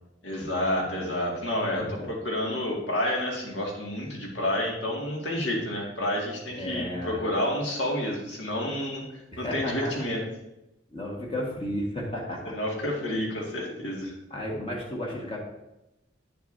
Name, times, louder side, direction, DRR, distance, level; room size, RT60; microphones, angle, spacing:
voice 1, 0.2-9.0 9.4-10.2 12.5-14.1, left 1 dB, 70° left, -2 dB, 2.1 m, -29 dB
voice 2, 1.8-2.1 6.5-7.2 9.3-9.9 10.9-12.5 14.3-15.4, left 1 dB, 30° left, -2 dB, 1.5 m, -33 dB
9.8 x 6.7 x 2.7 m, 0.94 s
head